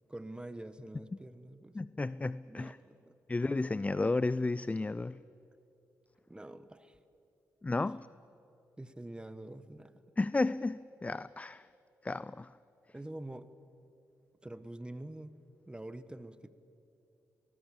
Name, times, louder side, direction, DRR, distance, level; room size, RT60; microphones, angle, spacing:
voice 1, 0.1-1.8 2.5-3.1 6.3-7.0 8.8-10.0 12.9-13.5 14.4-15.4 15.7-16.5, right 1 dB, 15° right, 1.1 m, -46 dB
voice 2, 1.7-2.8 3.3-5.2 7.6-8.1 10.2-11.7 12.0-12.5, left 3 dB, 20° left, 0.4 m, -33 dB
20.0 x 19.5 x 7.4 m
supercardioid pair, 55°, 7 cm